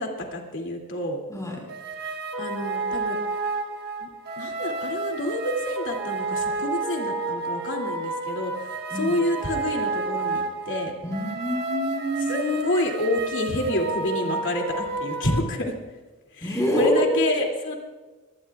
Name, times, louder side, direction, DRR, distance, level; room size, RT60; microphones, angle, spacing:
voice 1, 0.0-1.2 2.0-2.1 2.4-3.2 4.0-4.1 4.4-10.9 12.3-15.7 16.3-17.8, left 1 dB, 55° left, 2 dB, 2.6 m, -28 dB
voice 2, 1.3-1.6 8.9-9.2 11.0-12.3 16.4-17.2, equal, 15° left, -1 dB, 4.2 m, -25 dB
sound 1, 1.7-15.4, right 3 dB, 45° right, 1.3 m, -30 dB
24.0 x 18.5 x 2.4 m, 1.2 s
head